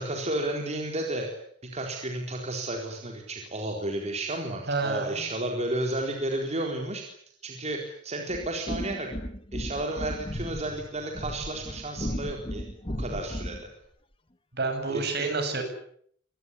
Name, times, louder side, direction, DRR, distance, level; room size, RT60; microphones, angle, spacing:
voice 1, 0.0-7.0 7.4-9.1 9.5-13.7 14.9-15.3, right 1 dB, 35° right, 2 dB, 4.1 m, -32 dB
voice 2, 4.7-5.2 14.5-15.7, right 3 dB, 55° right, 6 dB, 7.9 m, -29 dB
sound 1, 8.3-13.7, equal, 25° left, 2.0 m, -35 dB
26.0 x 20.0 x 9.8 m, 0.65 s
head